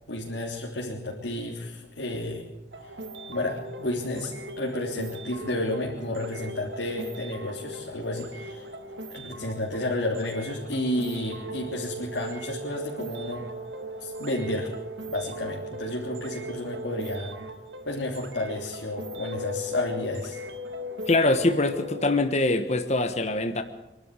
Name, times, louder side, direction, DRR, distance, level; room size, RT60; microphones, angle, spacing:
voice 1, 0.1-2.4 2.8-2.9 3.3-8.7 9.1-13.4 14.0-14.7 15.1-17.3 17.8-20.4, left 1 dB, 85° left, -3 dB, 3.4 m, -31 dB
sound 1, 2.7-22.1, equal, 80° right, 1.9 m, -39 dB
voice 2, 21.1-23.6, left 2 dB, 40° left, 7 dB, 1.3 m, -23 dB
26.0 x 12.5 x 8.3 m, 0.97 s
head